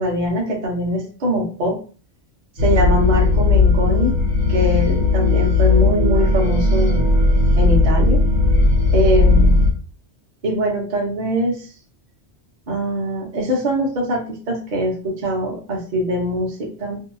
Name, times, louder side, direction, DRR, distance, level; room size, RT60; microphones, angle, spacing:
voice 1, 0.0-1.8 2.6-4.2 4.5-7.0 7.6-8.2 8.9-9.6 10.4-11.7 12.7-17.0, equal, 45° right, 0 dB, 0.8 m, -22 dB
sound 1, 2.6-9.7, left 3 dB, 85° right, 1.1 m, -16 dB
2.7 x 2.3 x 2.5 m, 0.38 s
omnidirectional pair, 1.2 m